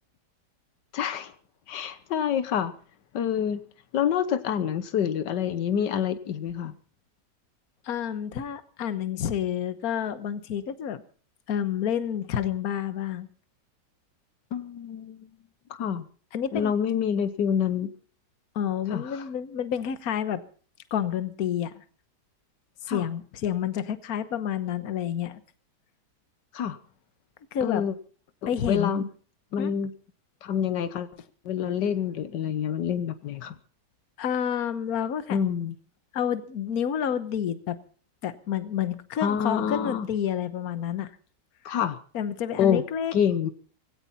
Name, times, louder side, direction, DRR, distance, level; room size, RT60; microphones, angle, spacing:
voice 1, 0.9-1.3 1.7-2.7 3.1-3.6 3.9-6.7 14.5-15.3 15.7-16.0 16.5-17.9 18.9-19.2 22.9-23.1 26.5-26.8 27.6-27.9 28.4-29.0 29.5-29.9 30.4-31.1 31.4-33.5 35.3-35.8 39.2-40.1 41.6-42.0 42.6-42.8 43.1-43.5, left 8 dB, 85° left, 13 dB, 1.6 m, -27 dB
voice 2, 7.8-11.0 11.5-13.3 16.3-16.7 18.5-20.4 20.9-21.8 22.8-25.4 27.5-27.8 28.5-29.1 29.6-29.7 34.2-35.4 36.1-37.8 38.2-41.1 42.1-43.1, left 9 dB, 60° left, 13 dB, 1.5 m, -29 dB
18.0 x 17.0 x 4.2 m, 0.41 s
omnidirectional pair, 1.8 m